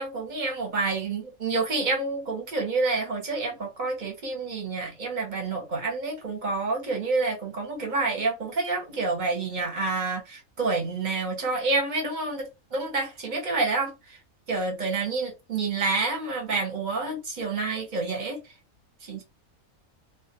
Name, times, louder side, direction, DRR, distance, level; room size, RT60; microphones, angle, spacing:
voice 1, 0.0-14.2 14.5-18.4 19.0-19.2, right 3 dB, 40° right, 0.8 m, -28 dB
2.3 x 2.2 x 2.8 m
omnidirectional pair, 1.5 m